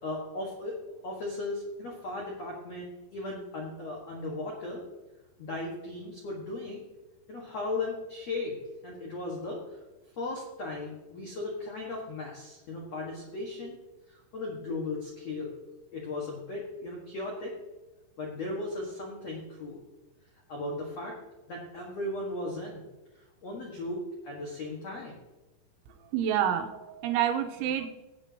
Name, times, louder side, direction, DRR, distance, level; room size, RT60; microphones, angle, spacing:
voice 1, 0.0-0.7 1.0-4.8 5.4-6.8 7.3-9.6 10.2-13.8 14.1-15.5 15.9-17.5 18.2-19.8 20.5-21.1 21.5-22.9 23.4-24.0 24.2-25.1, left 2 dB, 70° left, -2 dB, 1.6 m, -36 dB
voice 2, 26.1-27.9, right 10 dB, 80° right, 5 dB, 3.2 m, -28 dB
18.5 x 8.5 x 2.8 m, 1.1 s
omnidirectional pair, 5.6 m